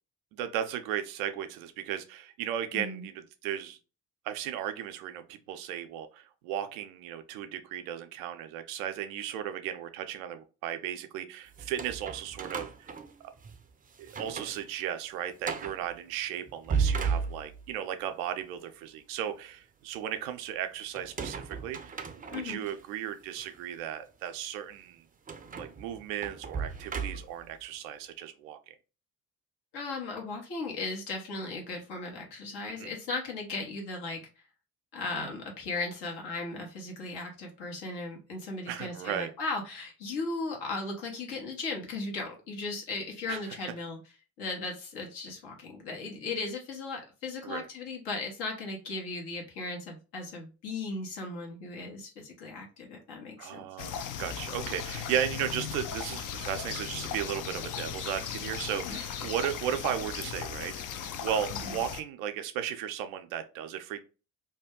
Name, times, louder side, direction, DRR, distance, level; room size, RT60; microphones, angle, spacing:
voice 1, 0.3-3.8 4.2-12.7 14.0-25.0 25.6-28.8 32.7-32.9 38.7-39.3 43.3-43.6 47.4-47.6 53.4-64.0, right 10 dB, 80° right, 8 dB, 0.5 m, -35 dB
voice 2, 2.7-3.0 22.3-22.6 29.7-34.2 34.9-44.0 44.4-53.6 58.8-59.0 61.6-61.8, left 3 dB, 70° left, 0 dB, 1.3 m, -37 dB
sound 1, 11.5-13.6 14.0-14.6 14.9-15.0 15.4-15.8 16.5-17.8 21.0-22.7 23.4-23.5 25.3-27.5, right 5 dB, 20° right, 0.4 m, -35 dB
sound 2, 53.8-62.0, left 8 dB, 50° left, 0.5 m, -37 dB
2.7 x 2.2 x 3.5 m, 0.33 s
hypercardioid pair, 50°, 42 cm